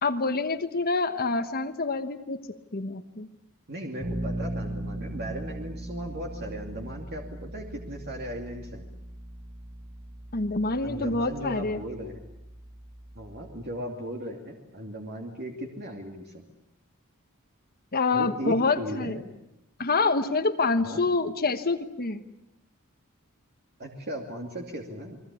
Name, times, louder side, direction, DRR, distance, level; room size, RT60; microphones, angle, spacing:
voice 1, 0.0-2.4 2.7-3.3 10.3-11.8 17.9-19.2 19.8-22.2, left 3 dB, 45° left, 7 dB, 1.3 m, -26 dB
voice 2, 3.7-8.8 10.8-12.2 13.1-16.4 18.1-19.2 20.8-21.0 23.8-25.2, equal, 50° right, 1 dB, 2.7 m, -37 dB
Bass guitar, 4.0-13.8, right 1 dB, 75° right, 7.8 m, -39 dB
30.0 x 22.0 x 8.5 m, 0.84 s
head